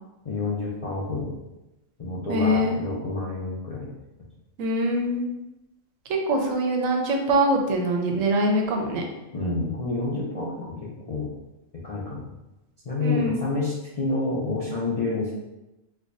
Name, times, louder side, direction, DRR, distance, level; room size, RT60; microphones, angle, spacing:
voice 1, 0.2-1.3 2.0-3.9 9.3-10.8 11.1-11.3 11.7-12.2 12.8-15.3, left 3 dB, 55° left, -7 dB, 0.4 m, -28 dB
voice 2, 2.3-2.8 4.6-5.3 6.1-9.0 13.0-13.4, right 1 dB, 80° right, 2 dB, 1.0 m, -23 dB
4.5 x 2.1 x 2.5 m, 0.98 s
omnidirectional pair, 1.4 m